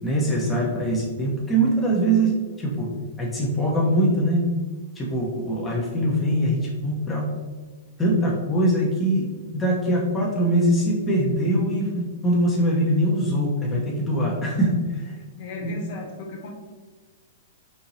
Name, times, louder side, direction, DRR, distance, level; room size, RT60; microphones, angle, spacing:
voice 1, 0.0-2.9 3.2-4.5 5.0-7.3 8.0-9.3 9.5-15.2 15.6-15.7, right 1 dB, 10° left, -4 dB, 0.8 m, -22 dB
voice 2, 15.4-16.5, left 2 dB, 55° left, -1 dB, 1.2 m, -35 dB
4.4 x 2.8 x 4.0 m, 1.4 s
hypercardioid pair, 145°, 0 cm